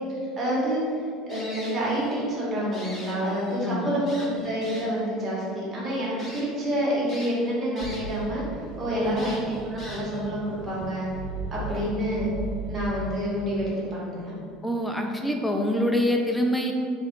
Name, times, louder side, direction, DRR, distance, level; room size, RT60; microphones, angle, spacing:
voice 1, 0.4-0.8 1.3-8.4 8.8-11.1 11.5-12.3 12.7-14.3, equal, 20° right, -7 dB, 1.1 m, -28 dB
sound 1, 1.3-2.2 2.6-3.6 4.1-5.0 5.6-5.7 6.2-6.4 7.1-8.2 8.5-8.6 9.2-10.3, left 1 dB, 25° left, 0.7 m, -43 dB
sound 2, 7.8-13.6, right 2 dB, 90° right, 0.6 m, -37 dB
voice 2, 9.0-9.3 11.7-11.9 14.6-16.7, left 1 dB, 5° left, 2 dB, 0.3 m, -26 dB
3.6 x 2.3 x 3.5 m, 2.2 s
cardioid pair, 145°, 0 cm